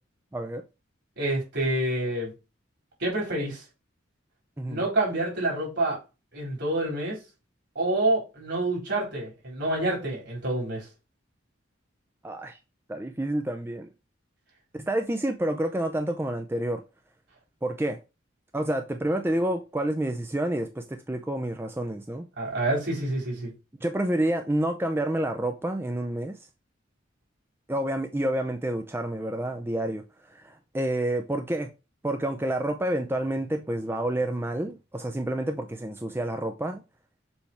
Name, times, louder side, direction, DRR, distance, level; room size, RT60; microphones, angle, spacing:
voice 1, 0.3-0.6 4.6-4.8 12.2-12.6 12.9-13.9 14.7-16.8 17.6-18.0 18.5-22.3 23.8-26.4 27.7-30.0 30.3-31.7 32.0-36.8, right 1 dB, 10° right, 0.5 m, -29 dB
voice 2, 1.2-2.3 3.0-3.6 4.7-6.0 6.3-7.2 7.7-10.8 22.4-23.5, right 2 dB, 60° right, 4.3 m, -27 dB
7.1 x 3.4 x 4.3 m
head